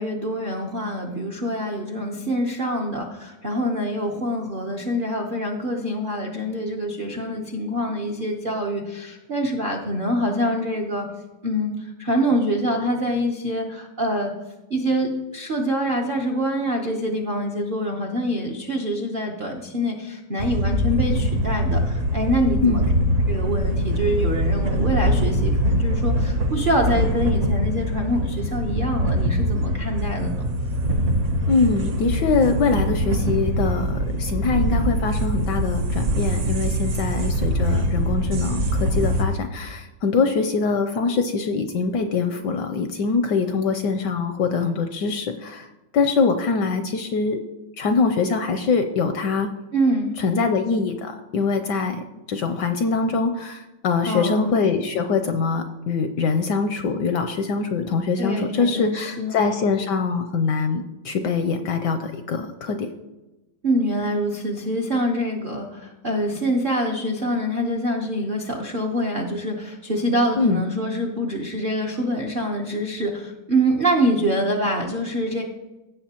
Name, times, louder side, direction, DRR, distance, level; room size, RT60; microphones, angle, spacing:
voice 1, 0.0-11.1 11.4-11.7 12.0-14.3 14.7-22.9 23.3-30.4 49.7-50.2 54.0-54.6 58.2-59.4 63.6-75.4, equal, 75° right, 1 dB, 0.4 m, -25 dB
sound 1, 20.4-39.2, equal, 55° right, 0.8 m, -23 dB
voice 2, 31.5-45.7 45.9-47.4 47.8-49.5 50.2-52.0 52.3-62.9 70.4-70.6, left 4 dB, 75° left, 7 dB, 1.0 m, -23 dB
16.0 x 6.7 x 2.9 m, 1.0 s
omnidirectional pair, 2.3 m